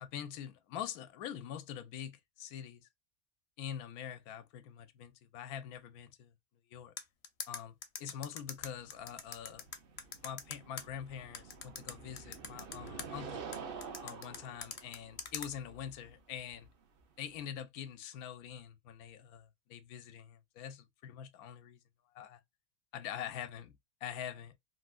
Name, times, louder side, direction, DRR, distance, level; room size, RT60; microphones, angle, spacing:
voice 1, 0.0-2.9 3.6-6.3 6.7-6.9 7.5-9.7 10.2-13.4 14.0-16.7 17.2-21.8 22.1-22.4 22.9-24.5, left 9 dB, 90° left, 1.1 m, -44 dB
sound 1, 7.0-10.8 11.3-13.1 13.5-15.5, left 7 dB, 55° left, 0.7 m, -42 dB
sound 2, 8.6-17.4, right 6 dB, 55° right, 0.7 m, -49 dB
3.3 x 2.6 x 2.3 m
omnidirectional pair, 1.5 m